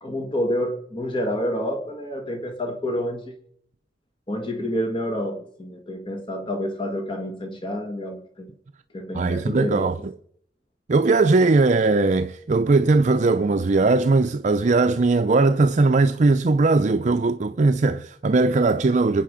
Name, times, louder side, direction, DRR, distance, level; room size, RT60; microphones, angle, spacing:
voice 1, 0.0-3.3 4.3-8.5 8.9-9.9, equal, 30° left, 1.8 m, -28 dB
voice 2, 9.1-10.1 10.9-19.2, right 3 dB, 45° right, 0.5 m, -19 dB
26.0 x 9.2 x 5.0 m
head